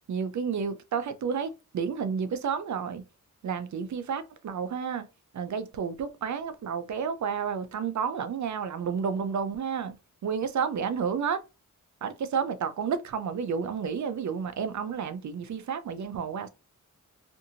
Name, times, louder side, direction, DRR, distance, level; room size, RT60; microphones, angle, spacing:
voice 1, 0.1-3.0 3.4-5.1 5.3-10.0 10.2-11.4 12.0-16.5, right 6 dB, 60° right, 0.5 m, -31 dB
2.6 x 2.6 x 2.7 m
wide cardioid pair, 175°, 33 cm